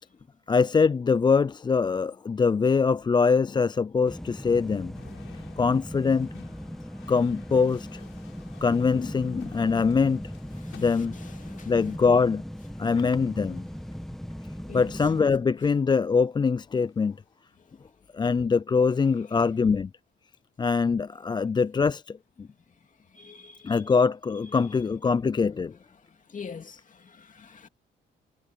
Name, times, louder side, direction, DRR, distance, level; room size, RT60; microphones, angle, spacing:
voice 1, 0.5-4.9 5.6-6.4 7.1-8.0 8.6-10.2 10.8-11.1 11.7-12.4 12.8-13.6 14.7-17.2 18.1-19.9 20.6-22.5 23.6-25.7, left 5 dB, 20° left, 0.4 m, -23 dB
sound 1, 4.0-15.2, equal, ahead, 1.7 m, -39 dB
sound 2, 4.9-14.3 15.0-15.5 16.6-17.3, left 12 dB, 80° left, 6.0 m, -56 dB
voice 2, 11.4-11.7 13.0-13.1 14.7-14.9 23.1-23.8 24.6-24.8 26.1-27.7, left 6 dB, 40° left, 2.7 m, -44 dB
cardioid pair, 90°, 20 cm